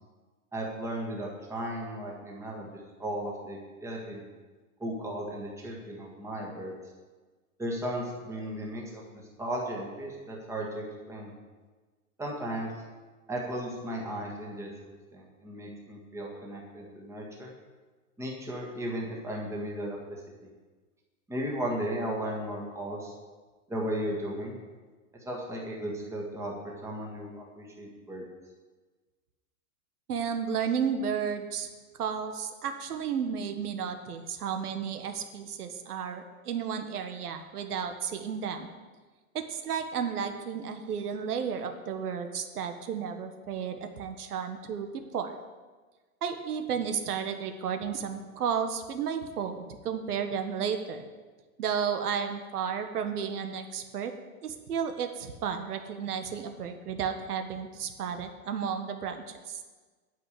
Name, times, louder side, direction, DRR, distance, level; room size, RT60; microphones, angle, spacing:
voice 1, 0.5-4.2 4.8-6.7 7.6-9.0 9.4-11.3 12.2-12.7 13.3-14.7 15.1-17.5 18.2-20.5 21.3-23.1 23.7-24.6 25.2-26.5 26.8-28.2, right 1 dB, 5° right, -2 dB, 1.7 m, -35 dB
voice 2, 30.1-31.7 32.0-38.7 39.3-45.4 46.2-51.1 51.6-54.1 54.4-59.6, right 7 dB, 85° right, 7 dB, 1.4 m, -33 dB
9.5 x 6.0 x 8.4 m, 1.3 s
hypercardioid pair, 150°, 45 cm